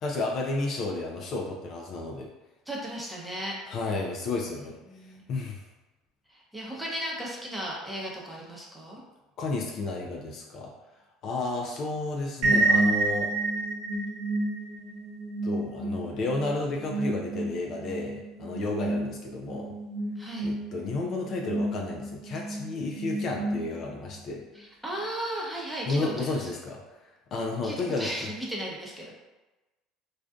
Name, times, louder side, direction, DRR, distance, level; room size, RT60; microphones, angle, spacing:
voice 1, 0.0-2.3 3.7-4.8 5.3-5.6 9.4-10.7 11.2-13.3 15.4-19.7 20.4-24.4 25.9-26.8 27.3-28.1, left 3 dB, 55° left, 0 dB, 0.4 m, -32 dB
voice 2, 2.7-3.6 4.9-5.2 6.3-9.0 20.2-20.5 24.5-26.5 27.6-29.1, right 1 dB, 5° right, -4 dB, 0.7 m, -36 dB
sound 1, 12.4-24.1, right 2 dB, 55° right, 0.9 m, -30 dB
2.4 x 2.3 x 2.3 m, 1.1 s
hypercardioid pair, 80°, 0 cm